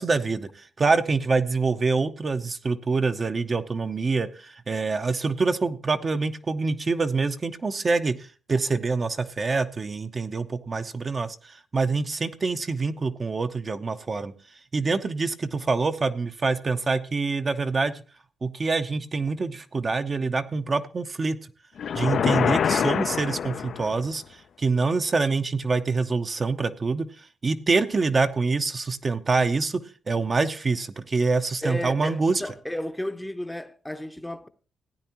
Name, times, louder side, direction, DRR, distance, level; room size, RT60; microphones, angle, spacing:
voice 1, 0.0-14.3 14.7-18.0 18.4-21.4 21.9-32.4, right 4 dB, 35° right, 0.7 m, -26 dB
sound 1, 21.8-24.1, left 7 dB, 65° left, 0.4 m, -25 dB
voice 2, 31.6-34.5, left 1 dB, 5° left, 0.7 m, -33 dB
16.0 x 9.2 x 2.9 m
cardioid pair, 85°, 0 cm